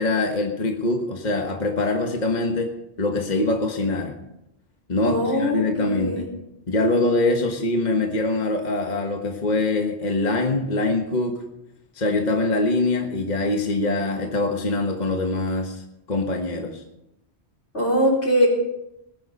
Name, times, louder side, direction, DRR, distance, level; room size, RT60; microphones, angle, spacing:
voice 1, 0.0-2.7 3.0-4.1 4.9-6.3 6.7-11.4 11.9-15.8 16.1-16.8, left 2 dB, 40° left, 3 dB, 1.5 m, -23 dB
voice 2, 5.0-6.3 17.7-18.5, equal, 75° left, -1 dB, 4.4 m, -22 dB
19.0 x 10.5 x 5.4 m, 0.86 s
omnidirectional pair, 1.1 m